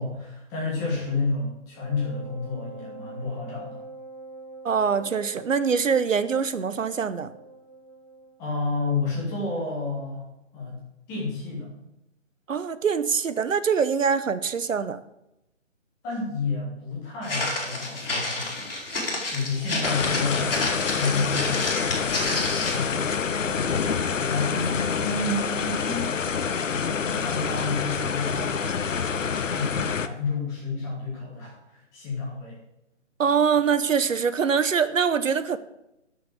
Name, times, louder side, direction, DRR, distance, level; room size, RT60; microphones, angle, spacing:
voice 1, 0.0-3.8 8.4-10.3 10.5-10.8 11.1-11.7 16.0-18.7 19.3-20.6 20.9-22.1 22.5-26.1 26.7-28.4 28.9-32.6, left 3 dB, 10° left, -5 dB, 1.7 m, -30 dB
Wind instrument woodwind instrument, 1.7-8.4, right 2 dB, 10° right, 1.5 m, -44 dB
voice 2, 4.6-7.3 12.5-15.0 33.2-35.6, right 6 dB, 80° right, 13 dB, 1.0 m, -24 dB
Walk footsteps, 17.2-22.9, left 2 dB, 45° left, 3.9 m, -30 dB
sound 1, 19.8-30.1, left 6 dB, 80° left, 0.9 m, -27 dB
8.7 x 7.0 x 7.7 m, 0.87 s
hypercardioid pair, 170°, 38 cm